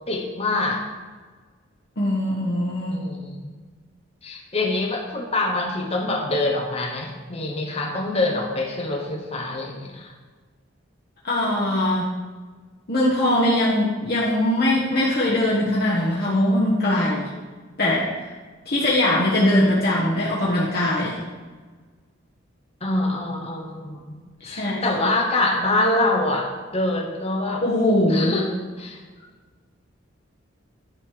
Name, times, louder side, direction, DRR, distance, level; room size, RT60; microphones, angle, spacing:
voice 1, 0.1-0.8 2.9-3.5 4.2-10.1 22.8-27.6 28.1-29.0, left 2 dB, 30° left, 0 dB, 1.0 m, -25 dB
voice 2, 2.0-3.0 11.2-12.1 12.9-17.3 17.8-18.3 18.6-21.2 24.4-24.8 27.6-28.4, left 1 dB, 55° left, -7 dB, 1.5 m, -21 dB
11.0 x 5.4 x 4.9 m, 1.4 s
head